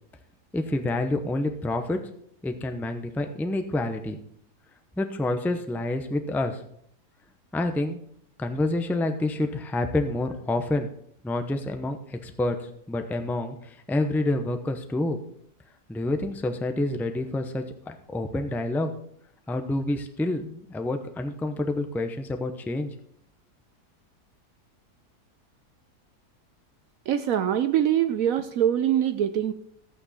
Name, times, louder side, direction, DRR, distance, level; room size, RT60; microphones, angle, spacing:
voice 1, 0.5-2.0 2.4-4.2 5.0-6.6 7.5-8.0 8.4-10.9 11.2-12.6 12.9-15.2 15.9-18.9 19.5-22.9, left 2 dB, ahead, 6 dB, 0.4 m, -28 dB
voice 2, 27.1-29.5, right 10 dB, 70° right, 11 dB, 0.9 m, -23 dB
13.5 x 8.7 x 4.2 m, 0.69 s
omnidirectional pair, 1.7 m